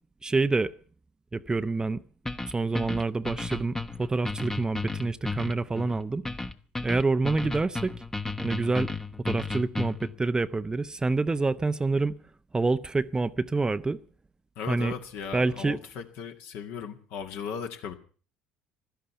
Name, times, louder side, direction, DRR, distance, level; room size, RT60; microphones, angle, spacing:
voice 1, 0.2-0.7 1.3-2.0 2.5-6.2 6.8-7.9 8.4-8.9 9.2-12.2 12.5-14.0 14.7-14.9 15.3-15.8, right 3 dB, 20° right, 0.7 m, -27 dB
sound 1, 2.3-10.1, left 3 dB, 10° left, 1.1 m, -34 dB
voice 2, 14.6-17.9, left 6 dB, 60° left, 2.0 m, -37 dB
16.5 x 12.5 x 6.9 m
hypercardioid pair, 65°, 4 cm